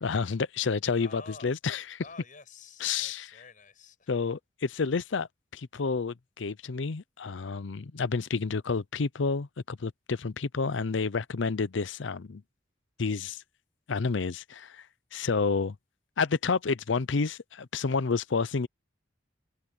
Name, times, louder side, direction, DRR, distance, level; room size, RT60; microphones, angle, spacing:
voice 1, 0.0-2.0 2.8-3.3 4.1-5.3 5.5-12.4 13.0-13.4 13.9-14.9 15.1-15.8 16.2-18.7, left 4 dB, 75° left, 0.6 m, -30 dB
voice 2, 1.0-1.5 2.0-4.1, left 4 dB, 45° left, 7.0 m, -49 dB
head